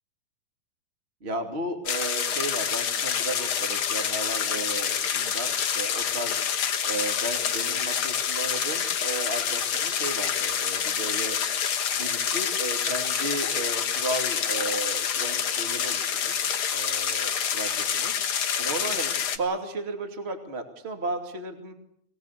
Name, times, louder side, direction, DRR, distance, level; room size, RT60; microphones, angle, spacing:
voice 1, 1.2-6.5 6.8-11.4 11.9-18.1 18.6-21.7, right 2 dB, 20° right, 6 dB, 2.4 m, -34 dB
sound 1, 1.9-19.4, left 8 dB, 55° left, 1.6 m, -27 dB
24.0 x 18.0 x 8.4 m, 0.70 s
omnidirectional pair, 4.1 m